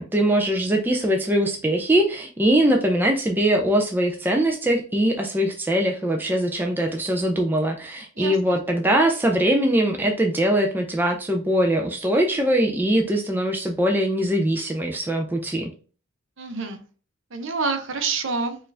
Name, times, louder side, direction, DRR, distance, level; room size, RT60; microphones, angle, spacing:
voice 1, 0.0-15.7, right 1 dB, 10° right, 2 dB, 0.4 m, -22 dB
voice 2, 8.2-8.6 16.4-16.8 17.3-18.6, right 4 dB, 60° right, 6 dB, 0.8 m, -27 dB
4.5 x 2.5 x 3.3 m, 0.37 s
head